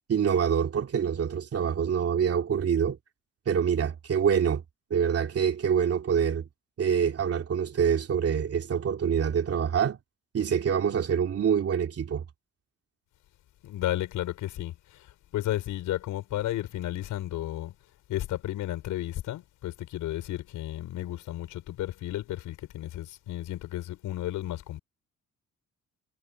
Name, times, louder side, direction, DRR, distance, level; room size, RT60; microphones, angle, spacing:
voice 1, 0.1-3.0 3.5-4.6 4.9-6.5 6.8-10.0 10.3-12.2, right 7 dB, 50° right, 2.9 m, -25 dB
voice 2, 13.6-17.7 18.1-24.8, left 14 dB, 85° left, 5.3 m, -33 dB
cardioid pair, 90°, 30 cm